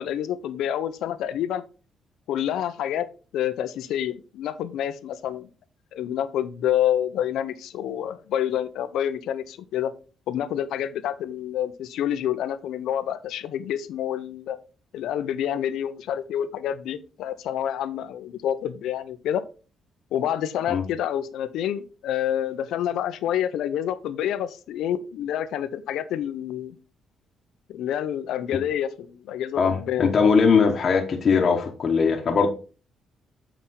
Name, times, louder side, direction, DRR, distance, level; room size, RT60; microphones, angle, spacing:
voice 1, 0.0-1.6 2.3-3.1 3.3-5.5 5.9-9.9 10.3-14.6 14.9-19.4 20.1-26.8 27.7-30.3, left 10 dB, 85° left, 13 dB, 0.7 m, -28 dB
voice 2, 29.6-32.5, left 5 dB, 40° left, 1 dB, 1.1 m, -20 dB
7.4 x 5.1 x 4.2 m, 0.36 s
cardioid pair, 150°, 0 cm